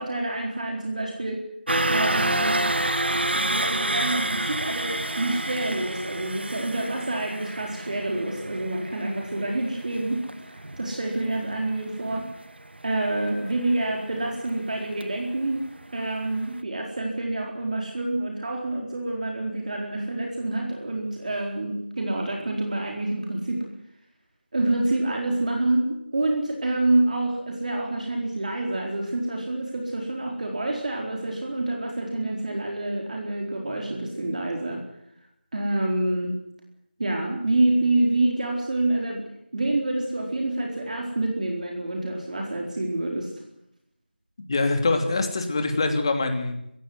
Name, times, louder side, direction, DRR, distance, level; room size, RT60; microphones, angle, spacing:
voice 1, 0.0-1.4 1.9-2.7 3.1-12.3 12.8-15.6 15.9-23.6 24.5-34.8 35.5-36.4 37.0-43.3, right 2 dB, 45° right, 0 dB, 4.3 m, -27 dB
sound 1, 1.7-15.7 16.1-16.3 16.6-16.7, right 1 dB, 70° right, 1.6 m, -29 dB
voice 2, 44.5-46.6, left 3 dB, 30° left, 5 dB, 2.9 m, -24 dB
23.5 x 16.0 x 9.5 m, 0.78 s
figure-of-eight pair, 170°, 6 cm